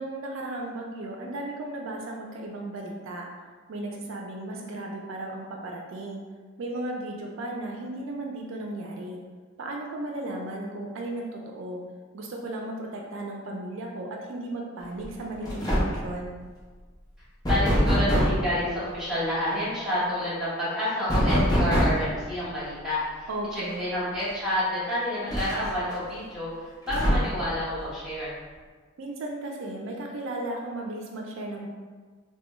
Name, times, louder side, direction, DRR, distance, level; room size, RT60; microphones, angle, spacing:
voice 1, 0.0-3.3 3.7-6.2 6.6-9.2 9.6-11.8 12.1-16.4 23.3-23.9 29.0-31.7, right 1 dB, 75° right, 0 dB, 0.4 m, -35 dB
sound 1, 15.0-15.2 15.5-16.1 17.4-18.5 21.1-22.1 23.7-23.8 24.2-24.3 25.3-25.9 26.9-27.5, equal, 20° left, 0.7 m, -23 dB
voice 2, 17.5-28.3, equal, ahead, -11 dB, 1.1 m, -29 dB
3.2 x 2.2 x 3.0 m, 1.4 s
head